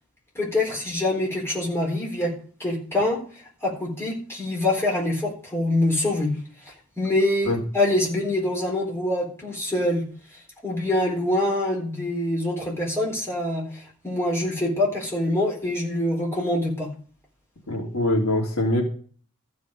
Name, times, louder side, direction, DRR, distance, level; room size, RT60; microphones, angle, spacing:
voice 1, 0.3-2.3 2.6-3.2 3.6-6.3 7.0-10.0 10.6-16.9, left 1 dB, 10° left, -3 dB, 3.9 m, -25 dB
voice 2, 17.7-18.8, left 1 dB, 80° left, 0 dB, 3.0 m, -23 dB
14.0 x 5.5 x 6.6 m, 0.44 s
head